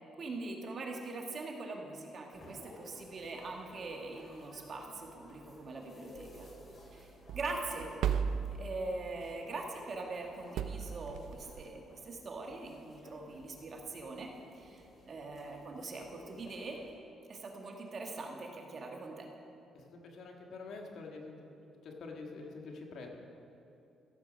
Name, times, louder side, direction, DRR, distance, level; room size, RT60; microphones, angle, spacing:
voice 1, 0.2-6.5 6.9-7.9 8.5-16.8 17.3-19.3, right 3 dB, 50° right, 1 dB, 1.6 m, -42 dB
sound 1, 2.3-16.9, left 1 dB, 45° left, 3.1 m, -56 dB
sound 2, 6.1-9.4 10.6-11.7, right 7 dB, 80° right, 0.4 m, -37 dB
voice 2, 19.7-21.3 21.8-23.1, left 3 dB, 70° left, 1 dB, 1.7 m, -46 dB
15.5 x 7.5 x 5.2 m, 2.7 s
cardioid pair, 90°, 0 cm